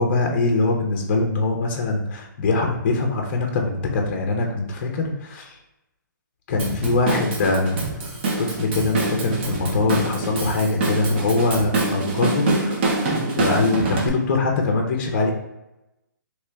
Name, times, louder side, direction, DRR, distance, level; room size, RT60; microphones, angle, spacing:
voice 1, 0.0-5.6 6.5-8.1 8.4-12.8 13.4-15.3, left 3 dB, 35° left, 1 dB, 0.5 m, -23 dB
Drum kit / Drum, 6.6-14.1, right 2 dB, 35° right, 0.6 m, -25 dB
3.1 x 3.0 x 3.3 m, 0.93 s
hypercardioid pair, 160°, 11 cm